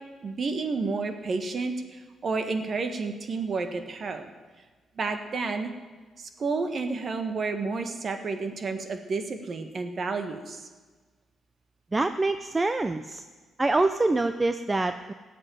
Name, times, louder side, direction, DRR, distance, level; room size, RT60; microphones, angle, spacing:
voice 1, 0.2-4.3 5.0-5.7 6.2-10.7, right 4 dB, 40° right, 7 dB, 1.6 m, -31 dB
voice 2, 11.9-13.2 13.6-15.1, right 2 dB, 20° right, 9 dB, 0.5 m, -25 dB
16.5 x 7.7 x 9.4 m, 1.4 s
cardioid pair, 115°, 0 cm